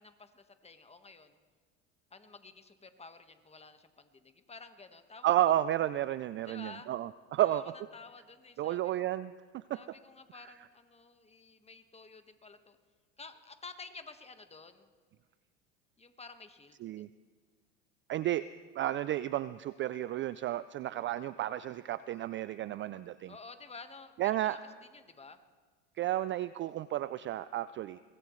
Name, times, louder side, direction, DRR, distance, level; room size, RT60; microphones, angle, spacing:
voice 1, 0.0-1.4 2.1-5.3 6.4-6.9 7.4-7.6 7.9-8.9 9.7-12.8 13.2-14.9 16.0-17.0 23.3-25.4, left 4 dB, 15° left, 8 dB, 1.4 m, -51 dB
voice 2, 5.2-7.7 8.6-9.8 16.8-17.1 18.1-18.4 18.8-23.3 24.2-24.6 26.0-28.0, right 13 dB, 35° right, 16 dB, 0.4 m, -32 dB
23.5 x 19.0 x 3.2 m, 1.5 s
hypercardioid pair, 90°, 38 cm